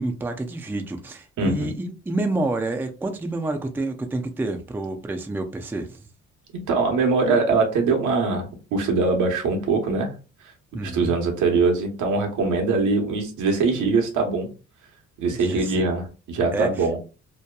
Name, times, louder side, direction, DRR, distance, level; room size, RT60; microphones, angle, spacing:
voice 1, 0.0-6.0 10.7-11.1 15.3-15.8 16.5-16.9, right 2 dB, 5° right, 0.4 m, -28 dB
voice 2, 1.4-1.7 6.7-8.4 8.7-10.1 10.8-14.5 15.2-17.0, right 4 dB, 80° right, 0.9 m, -22 dB
2.8 x 2.2 x 2.2 m
cardioid pair, 90°, 30 cm